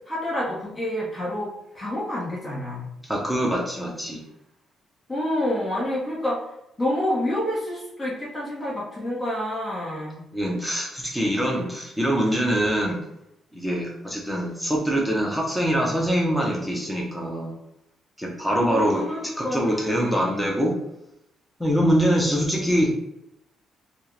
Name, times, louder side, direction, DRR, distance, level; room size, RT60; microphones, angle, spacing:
voice 1, 0.0-1.5 1.7-2.9 5.1-10.2 18.7-20.3, left 1 dB, 25° left, -5 dB, 1.3 m, -28 dB
voice 2, 3.0-4.2 10.3-13.0 13.5-17.5 18.2-20.7 21.6-22.9, equal, ahead, -2 dB, 0.9 m, -24 dB
4.4 x 2.4 x 3.3 m, 0.82 s
cardioid pair, 90°, 0 cm